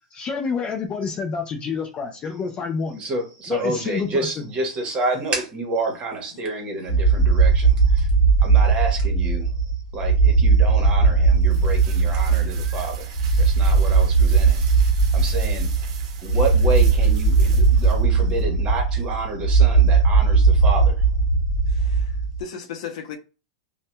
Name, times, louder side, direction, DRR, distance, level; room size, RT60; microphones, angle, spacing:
voice 1, 0.1-3.0 3.5-4.4, left 5 dB, 25° left, 0.4 m, -28 dB
voice 2, 3.0-8.1 8.4-9.5 9.9-15.7 16.2-21.0, right 2 dB, 30° right, 1.1 m, -29 dB
sound 1, 6.9-22.4, right 4 dB, 45° left, 1.3 m, -18 dB
sound 2, 10.6-18.5, right 6 dB, 60° right, 0.7 m, -43 dB
voice 3, 21.7-23.2, left 7 dB, 65° left, 0.6 m, -36 dB
2.6 x 2.2 x 2.2 m
hypercardioid pair, 130°, 4 cm